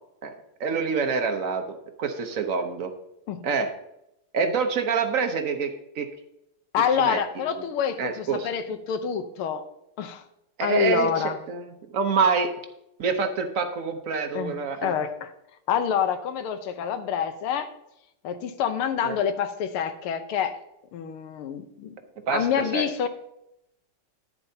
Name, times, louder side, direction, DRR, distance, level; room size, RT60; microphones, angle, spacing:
voice 1, 0.6-2.9 3.4-3.7 4.3-6.1 7.0-7.6 8.0-8.5 10.6-12.5 13.0-14.9 19.0-19.2 22.3-22.5 22.7-22.9, right 5 dB, 65° right, 6 dB, 0.8 m, -26 dB
voice 2, 6.7-9.7 10.0-10.2 10.6-11.4 14.3-15.3 15.7-17.7 18.2-20.6 20.9-21.9 22.3-23.1, left 8 dB, 80° left, 9 dB, 1.7 m, -27 dB
10.5 x 10.0 x 2.7 m, 0.83 s
omnidirectional pair, 2.4 m